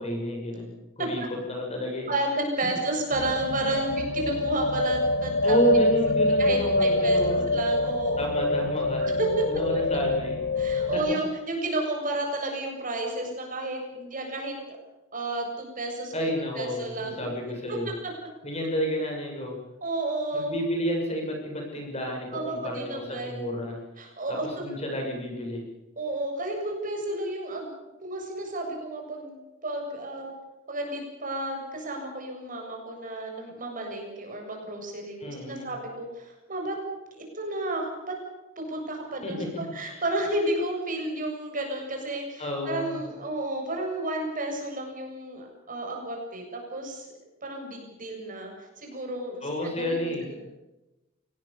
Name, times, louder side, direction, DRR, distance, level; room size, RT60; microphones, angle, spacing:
voice 1, 0.0-2.1 2.6-2.7 5.4-7.7 8.2-9.1 9.5-10.4 10.9-11.0 16.1-17.9 18.4-19.6 20.3-23.8 24.3-25.7 35.2-35.7 39.2-39.7 42.4-43.0 49.4-50.3, equal, 30° left, 1 dB, 7.7 m, -30 dB
voice 2, 2.1-5.6 6.4-7.2 7.5-8.3 9.0-9.5 10.6-14.8 15.1-16.3 16.6-17.2 18.0-18.1 19.8-20.6 22.3-23.4 24.0-24.6 26.0-27.7 28.0-29.4 29.6-30.3 30.7-36.8 37.1-38.1 38.6-47.1 47.4-50.3, right 2 dB, 45° right, 2 dB, 7.8 m, -32 dB
sound 1, 3.1-11.2, left 2 dB, 80° left, 0.9 m, -26 dB
25.5 x 19.5 x 7.2 m, 1.0 s
head